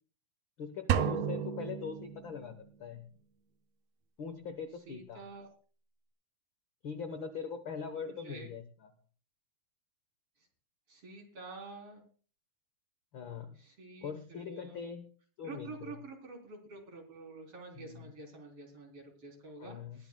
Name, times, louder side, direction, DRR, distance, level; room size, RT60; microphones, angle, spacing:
voice 1, 0.6-3.1 4.2-5.2 6.8-8.9 13.1-13.6 14.0-15.1 15.4-15.9 17.8-18.0 19.6-20.0, left 6 dB, 70° left, 9 dB, 1.2 m, -42 dB
sound 1, 0.9-2.7, right 9 dB, 75° right, 1.5 m, -32 dB
voice 2, 4.9-5.5 8.1-8.5 10.9-12.0 13.6-14.8 15.4-20.1, right 3 dB, 45° right, 2 dB, 4.5 m, -48 dB
21.0 x 13.5 x 2.3 m, 0.40 s
omnidirectional pair, 3.9 m